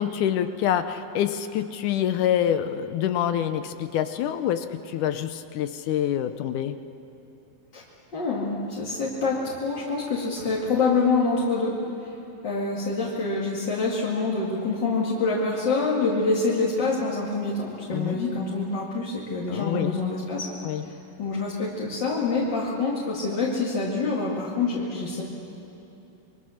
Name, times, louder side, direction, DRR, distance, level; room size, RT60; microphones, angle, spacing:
voice 1, 0.0-6.8 17.9-18.2 19.5-20.0 20.6-20.9, left 10 dB, 75° left, 10 dB, 1.9 m, -26 dB
voice 2, 8.1-11.8 12.0-12.1 12.4-20.5 20.8-25.2, left 3 dB, 35° left, -5 dB, 2.3 m, -26 dB
27.5 x 23.0 x 6.5 m, 2.9 s
omnidirectional pair, 4.1 m